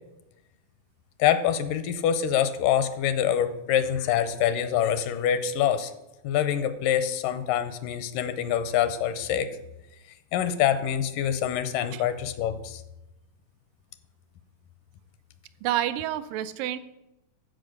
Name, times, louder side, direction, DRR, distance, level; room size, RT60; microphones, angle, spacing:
voice 1, 1.2-5.9 6.2-9.5 10.3-12.8, left 9 dB, 85° left, 11 dB, 2.3 m, -25 dB
voice 2, 15.6-16.8, right 12 dB, 85° right, 12 dB, 2.2 m, -28 dB
13.0 x 5.1 x 6.5 m, 0.93 s
omnidirectional pair, 3.8 m